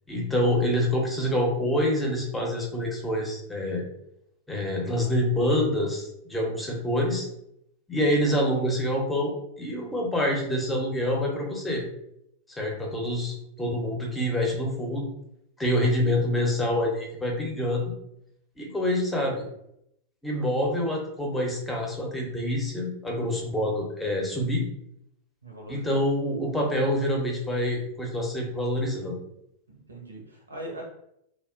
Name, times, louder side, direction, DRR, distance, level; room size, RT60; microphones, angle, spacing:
voice 1, 0.1-3.8 4.5-7.3 7.9-11.8 12.5-15.1 15.6-17.9 18.6-19.4 20.2-24.6 25.7-29.2, left 1 dB, 10° left, -1 dB, 0.7 m, -26 dB
voice 2, 25.4-26.1 29.7-30.8, right 1 dB, 75° right, 0 dB, 0.6 m, -41 dB
2.7 x 2.1 x 2.4 m, 0.77 s
figure-of-eight pair, 90°, 0 cm